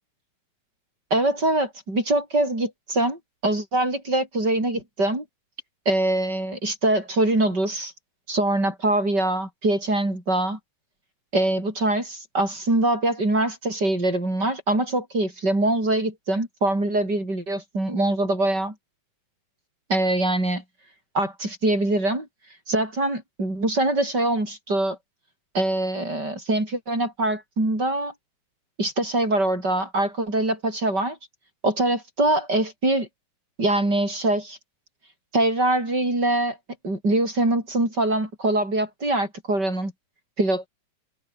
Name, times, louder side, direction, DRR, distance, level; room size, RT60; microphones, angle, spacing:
voice 1, 1.1-5.2 5.8-7.9 8.3-10.6 11.3-18.7 19.9-20.6 21.1-22.3 22.7-25.0 25.5-28.1 28.8-31.2 31.6-33.1 33.6-34.6 35.3-36.6 36.8-39.9 40.4-40.7, right 1 dB, 25° right, 8.3 m, -23 dB
omnidirectional pair, 4.0 m